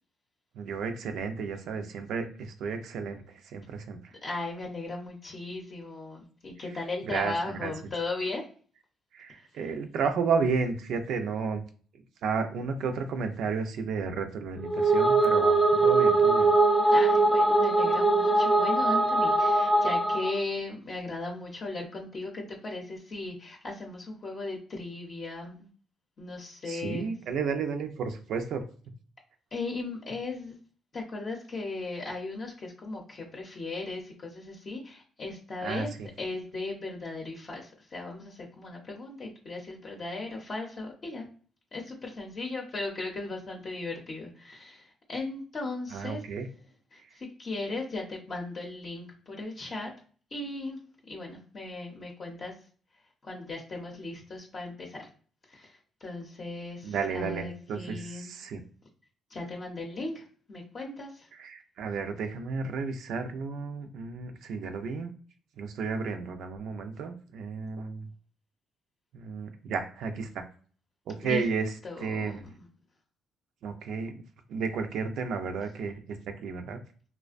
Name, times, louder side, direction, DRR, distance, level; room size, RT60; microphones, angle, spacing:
voice 1, 0.6-4.1 7.0-7.7 9.1-11.6 12.2-16.5 26.7-28.6 35.6-36.1 45.9-46.5 56.8-58.6 61.4-65.1 65.6-68.1 69.1-70.4 71.1-71.7 72.0-72.5 73.6-74.2 74.5-76.2 76.4-76.8, right 5 dB, 75° right, 6 dB, 0.4 m, -32 dB
voice 2, 4.2-8.4 16.9-25.7 26.2-27.1 29.5-30.6 30.9-35.9 36.2-41.3 41.7-46.2 46.9-49.9 50.3-50.8 51.1-52.5 53.2-55.1 55.5-58.3 59.3-61.3 71.2-71.4 71.8-72.6, left 2 dB, 45° left, -1 dB, 0.6 m, -37 dB
sound 1, 14.6-20.4, right 2 dB, 5° left, 0.5 m, -22 dB
2.5 x 2.1 x 2.4 m, 0.43 s
cardioid pair, 90°, 0 cm